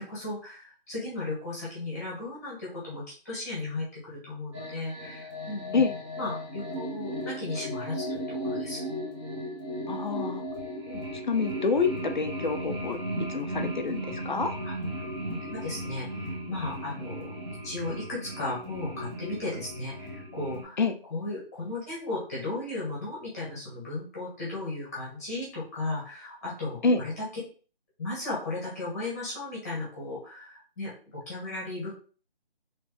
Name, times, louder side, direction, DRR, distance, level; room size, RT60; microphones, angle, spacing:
voice 1, 0.0-5.8 6.2-8.8 10.8-11.0 14.6-14.7 15.3-17.3 17.6-20.8 21.1-27.3 28.0-32.0, left 2 dB, 15° left, -6 dB, 1.1 m, -36 dB
sound 1, 4.5-20.6, equal, 30° right, 1.1 m, -36 dB
voice 2, 9.9-10.4 11.3-13.0 13.3-14.6 20.8-21.0 26.8-27.0, left 4 dB, 50° left, 7 dB, 0.5 m, -27 dB
3.1 x 3.1 x 3.1 m, 0.39 s
figure-of-eight pair, 165°, 31 cm